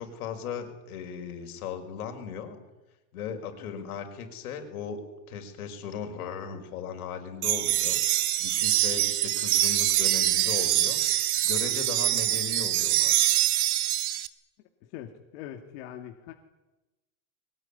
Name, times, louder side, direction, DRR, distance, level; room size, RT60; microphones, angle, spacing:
voice 1, 0.0-2.6 3.1-5.0 5.3-11.0 11.4-13.3, left 7 dB, 90° left, 6 dB, 5.6 m, -37 dB
sound 1, 7.4-14.3, right 14 dB, 80° right, 1.7 m, -25 dB
voice 2, 14.8-16.3, left 11 dB, 55° left, 4 dB, 2.3 m, -43 dB
23.0 x 19.5 x 10.0 m, 1.0 s
supercardioid pair, 160°, 43 cm